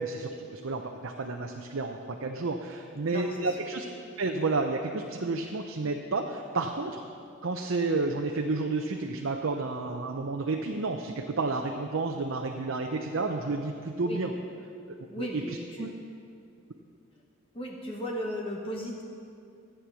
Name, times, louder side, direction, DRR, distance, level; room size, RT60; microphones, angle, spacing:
voice 1, 0.0-3.8 4.2-7.0 7.4-14.3 15.2-15.3 15.8-15.9, right 3 dB, 75° right, 2 dB, 0.7 m, -31 dB
voice 2, 3.1-3.6 14.0-14.2 15.1-15.9 17.5-19.0, equal, 25° left, -1 dB, 1.0 m, -36 dB
13.0 x 8.6 x 6.2 m, 2.4 s
head